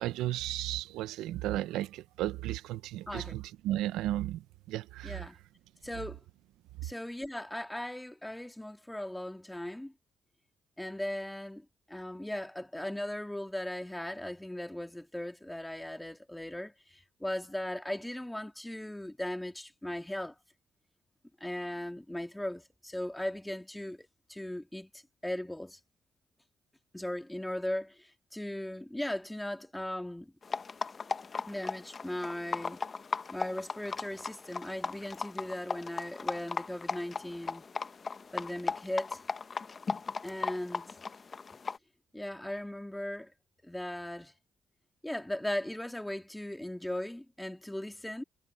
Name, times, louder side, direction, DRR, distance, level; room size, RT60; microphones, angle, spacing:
voice 1, 0.0-5.3, right 14 dB, 90° right, 0.8 m, -34 dB
voice 2, 5.0-5.4 5.8-6.2 6.8-9.9 10.8-20.4 21.4-25.8 26.9-30.3 31.5-32.8 33.3-37.6 38.3-39.2 40.2-40.9 42.1-43.3 43.6-44.3 45.0-48.2, left 1 dB, 10° left, 2.3 m, -38 dB
sound 1, 30.4-41.8, left 5 dB, 45° left, 1.2 m, -37 dB
supercardioid pair, 60°, 0 cm